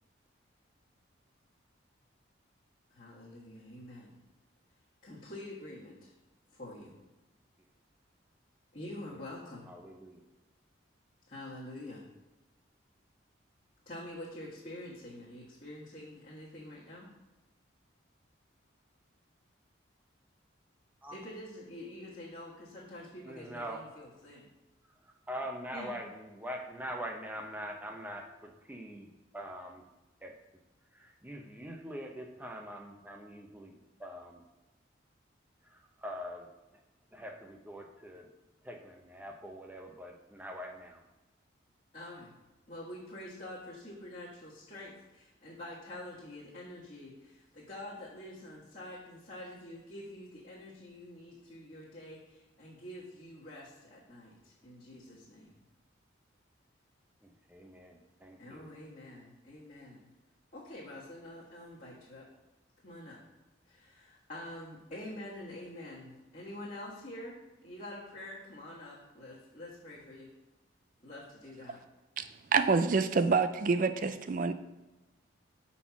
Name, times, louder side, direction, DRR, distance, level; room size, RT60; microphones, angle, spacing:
voice 1, 2.9-4.2 5.0-6.1 6.5-7.0 8.7-9.7 11.3-12.1 13.8-17.1 21.1-24.5 25.7-25.9 41.9-42.3 42.7-55.6 58.4-60.1 60.5-62.3 62.8-63.2 63.7-70.3 71.0-71.8, left 1 dB, 40° left, -9 dB, 1.5 m, -46 dB
voice 2, 9.7-10.2 21.0-21.2 23.2-23.8 25.0-28.2 28.7-29.1 29.3-29.8 30.2-30.3 30.9-33.7 34.0-34.4 35.6-36.5 37.1-38.3 38.6-41.0 57.2-58.7, equal, 10° right, 2 dB, 0.7 m, -43 dB
voice 3, 72.5-74.5, right 4 dB, 40° right, 11 dB, 0.4 m, -27 dB
5.6 x 4.2 x 5.8 m, 1.1 s
head